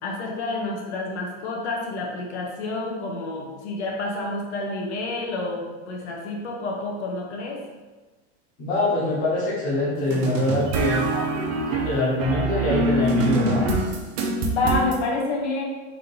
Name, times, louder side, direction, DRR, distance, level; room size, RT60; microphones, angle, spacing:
voice 1, 0.0-7.6 14.3-15.6, left 2 dB, 80° left, 0 dB, 1.1 m, -28 dB
voice 2, 8.6-11.0 11.7-13.7, left 2 dB, 25° left, -5 dB, 1.0 m, -24 dB
sound 1, 10.1-15.0, right 2 dB, 40° right, 0.5 m, -24 dB
3.7 x 3.0 x 3.9 m, 1.3 s
supercardioid pair, 175°, 33 cm